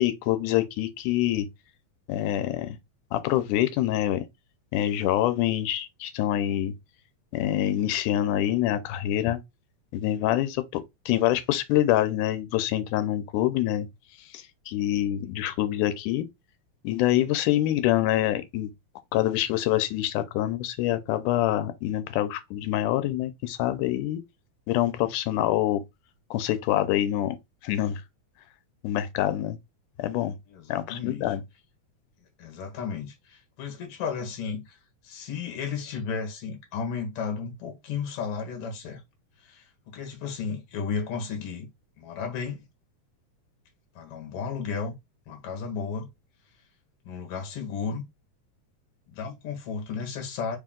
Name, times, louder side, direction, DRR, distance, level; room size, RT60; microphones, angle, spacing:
voice 1, 0.0-1.5 2.1-2.8 3.1-4.2 4.7-6.7 7.3-9.4 9.9-13.9 14.3-16.3 16.8-18.7 19.1-24.2 24.7-25.8 26.3-27.4 27.6-28.0 28.8-29.6 30.0-30.4 30.7-31.4, left 13 dB, 90° left, 2.1 m, -26 dB
voice 2, 30.5-31.3 32.4-34.8 35.0-39.0 39.4-41.7 42.0-42.6 44.0-44.9 45.3-46.1 47.1-48.0 49.1-50.6, left 6 dB, 55° left, 2.0 m, -33 dB
4.7 x 2.8 x 3.6 m
omnidirectional pair, 3.5 m